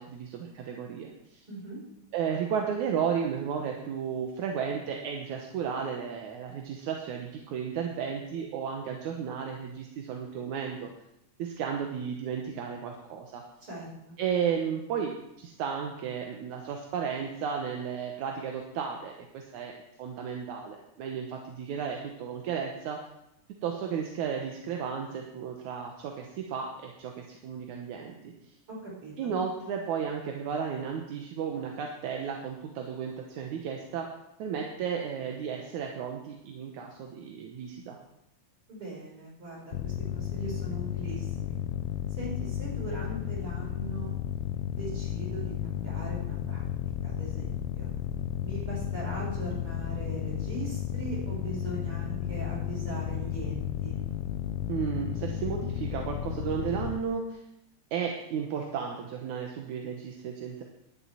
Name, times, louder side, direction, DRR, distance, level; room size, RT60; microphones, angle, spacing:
voice 1, 0.0-1.4 2.1-10.9 11.4-13.4 14.2-15.1 15.4-23.0 23.6-28.3 29.2-34.1 34.4-38.0 54.7-57.4 57.9-60.6, right 7 dB, 80° right, 1 dB, 2.5 m, -33 dB
voice 2, 1.5-1.8 13.6-14.2 28.7-29.3 38.7-41.6 42.1-44.1 44.7-46.6 47.0-47.9 48.4-54.0, right 2 dB, 45° right, -4 dB, 5.9 m, -40 dB
sound 1, 39.7-57.0, left 11 dB, 85° left, 1.3 m, -33 dB
11.5 x 7.3 x 8.9 m, 0.82 s
omnidirectional pair, 3.5 m